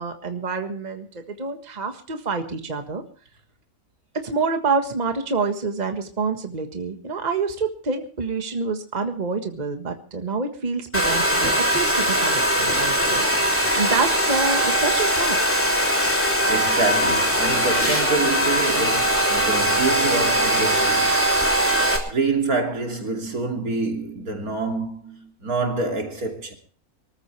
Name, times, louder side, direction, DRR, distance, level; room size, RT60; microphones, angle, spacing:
voice 1, 0.0-3.0 4.1-15.4, right 4 dB, 30° right, 1.7 m, -27 dB
Domestic sounds home sounds, 10.9-22.0, equal, 10° left, 3.2 m, -21 dB
voice 2, 16.2-21.2 21.7-26.5, right 3 dB, 75° right, 3.4 m, -27 dB
24.5 x 14.0 x 3.3 m
omnidirectional pair, 1.6 m